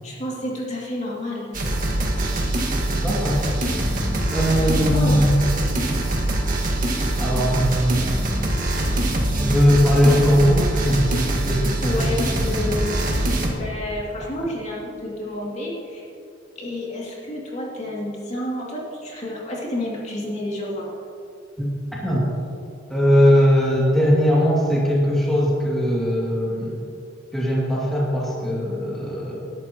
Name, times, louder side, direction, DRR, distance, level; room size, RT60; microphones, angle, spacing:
voice 1, 0.0-1.6 2.9-3.1 4.9-5.2 11.8-12.9 13.5-16.1 16.6-20.9, left 1 dB, 40° left, -4 dB, 2.6 m, -30 dB
sound 1, 1.5-13.5, right 1 dB, 45° right, 1.8 m, -23 dB
voice 2, 2.9-3.4 3.8-3.9 4.3-5.3 7.2-8.0 9.3-12.1 21.6-22.3 22.9-26.8 27.3-29.5, equal, ahead, -6 dB, 2.5 m, -20 dB
21.0 x 11.5 x 3.0 m, 2.5 s
head